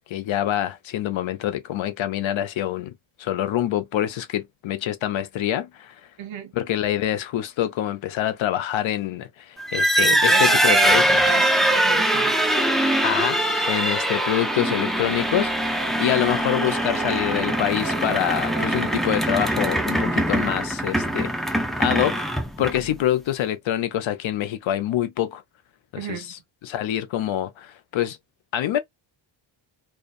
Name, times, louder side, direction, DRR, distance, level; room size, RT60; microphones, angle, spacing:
voice 1, 0.1-2.9 3.2-5.9 6.5-11.4 13.0-13.4 13.7-21.3 21.8-22.3 22.6-25.4 25.9-28.2 28.5-28.8, left 12 dB, 75° left, 0.6 m, -26 dB
voice 2, 6.2-6.5 10.0-12.4 26.0-26.3, right 8 dB, 75° right, 0.7 m, -30 dB
sound 1, 9.6-23.0, right 1 dB, ahead, 0.3 m, -22 dB
sound 2, 12.4-19.3, right 5 dB, 15° right, 0.8 m, -38 dB
2.5 x 2.3 x 2.3 m
wide cardioid pair, 120°, 47 cm